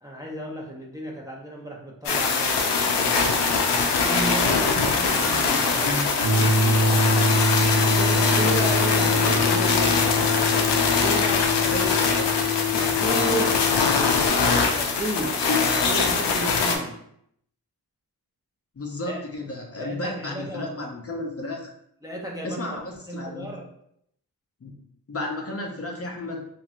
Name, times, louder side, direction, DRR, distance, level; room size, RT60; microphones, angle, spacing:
voice 1, 0.0-3.2 4.0-6.0 7.8-10.0 10.9-12.2 12.7-13.7 14.7-15.4 15.9-17.0 19.1-19.2 19.8-20.7 22.0-22.7 23.1-23.7, right 1 dB, 10° right, -2 dB, 0.5 m, -33 dB
sound 1, 2.1-16.8, left 4 dB, 85° left, 0.5 m, -22 dB
voice 2, 4.7-6.5 9.1-9.2 11.6-12.3 15.2-15.9 18.8-21.7 22.4-23.5 24.6-24.7 25.1-26.4, left 2 dB, 35° left, 1 dB, 0.5 m, -32 dB
sound 2, 6.2-14.3, left 2 dB, 70° right, 0.7 m, -24 dB
2.9 x 2.6 x 2.4 m, 0.72 s
cardioid pair, 55°, 41 cm